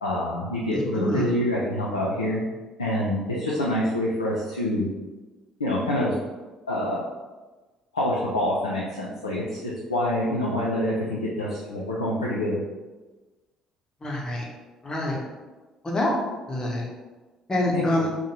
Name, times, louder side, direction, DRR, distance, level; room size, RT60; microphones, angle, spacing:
voice 1, 0.0-2.4 2.8-4.9 5.6-6.1 6.7-7.0 7.9-12.6 17.7-18.0, left 1 dB, 85° left, -6 dB, 0.3 m, -26 dB
voice 2, 0.9-1.3 14.0-14.4 14.8-15.2 15.8-16.1 16.5-16.9 17.5-18.1, left 1 dB, 25° left, -2 dB, 0.7 m, -26 dB
2.6 x 2.1 x 2.9 m, 1.2 s
figure-of-eight pair, 50°, 3 cm